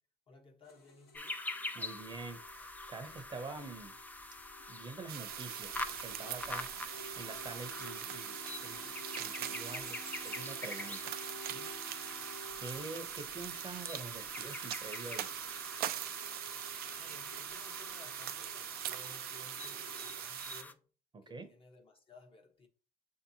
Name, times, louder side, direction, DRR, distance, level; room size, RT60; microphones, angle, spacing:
voice 1, 0.3-1.4 10.8-11.0 12.4-12.6 17.0-20.9 21.3-22.7, left 3 dB, 30° left, 0.9 m, -58 dB
sound 1, 0.6-20.2, left 2 dB, 70° left, 1.2 m, -54 dB
sound 2, 1.1-20.7, left 2 dB, 10° left, 0.4 m, -46 dB
voice 2, 1.7-4.0 4.7-10.0 10.2-11.2 11.5-11.7 12.2-15.5 21.1-21.5, right 3 dB, 25° right, 0.7 m, -46 dB
sound 3, 5.1-20.6, right 12 dB, 65° right, 0.4 m, -42 dB
6.5 x 2.8 x 2.7 m
cardioid pair, 110°, 17 cm